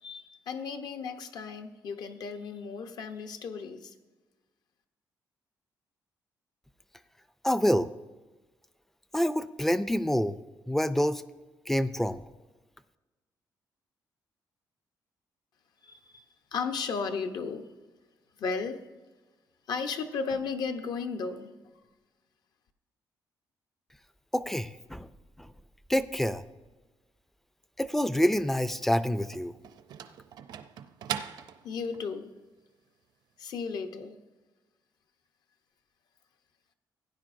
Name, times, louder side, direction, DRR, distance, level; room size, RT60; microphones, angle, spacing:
voice 1, 0.0-3.9 15.8-16.2 16.5-17.7 18.4-18.8 19.7-21.8 31.6-32.3 33.4-34.2, left 5 dB, 65° left, 6 dB, 0.8 m, -35 dB
voice 2, 7.4-7.9 9.1-10.4 10.7-11.2 11.7-12.2 24.3-25.1 25.4-25.5 25.9-26.4 27.8-29.5, equal, 5° left, 13 dB, 0.3 m, -27 dB
sound 1, 28.6-32.1, right 9 dB, 70° right, 0.5 m, -40 dB
16.5 x 9.7 x 2.6 m, 1.2 s
cardioid pair, 155°, 7 cm